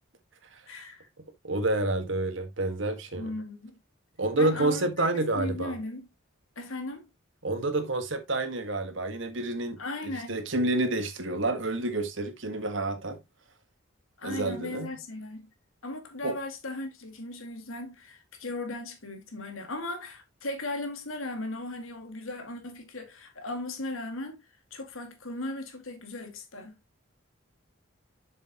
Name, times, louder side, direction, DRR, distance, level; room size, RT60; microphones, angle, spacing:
voice 1, 0.7-1.1 3.1-3.8 4.4-5.1 5.3-6.1 6.6-7.1 9.8-10.4 14.2-15.5 15.8-24.4 24.7-26.7, left 2 dB, 80° left, 2.0 m, -37 dB
voice 2, 1.4-3.3 4.2-5.8 7.4-13.2 14.2-15.0 16.2-16.3, right 2 dB, 65° right, 1.5 m, -29 dB
7.6 x 6.6 x 2.9 m
head